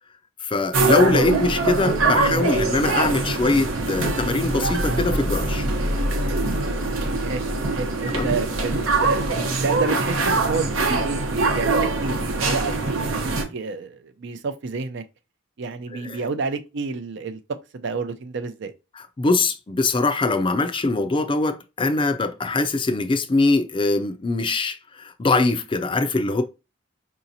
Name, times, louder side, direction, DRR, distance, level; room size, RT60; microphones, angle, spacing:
voice 1, 0.4-5.7 8.1-8.3 16.0-16.2 19.2-26.4, left 3 dB, 25° left, 0.4 m, -22 dB
sound 1, 0.7-13.4, right 2 dB, 85° right, 0.8 m, -23 dB
voice 2, 7.1-8.7 9.0-9.2 9.6-15.0 15.6-17.4 17.7-18.7, right 4 dB, 65° right, 0.5 m, -29 dB
4.8 x 2.9 x 2.6 m
head